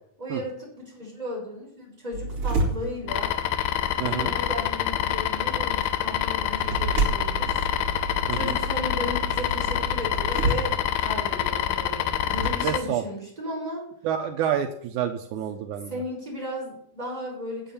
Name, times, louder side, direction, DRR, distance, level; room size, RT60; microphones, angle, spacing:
voice 1, 0.2-3.3 3.9-7.7 8.3-13.9 15.9-17.7, left 1 dB, 10° right, -4 dB, 5.5 m, -35 dB
sound 1, 2.1-12.5, right 3 dB, 45° right, 3.0 m, -32 dB
sound 2, 3.1-12.8, left 11 dB, 90° left, 2.3 m, -26 dB
voice 2, 4.0-4.3 8.3-8.6 12.6-13.0 14.0-15.9, right 9 dB, 80° right, 5 dB, 2.2 m, -28 dB
9.1 x 7.9 x 7.0 m, 0.66 s
omnidirectional pair, 3.6 m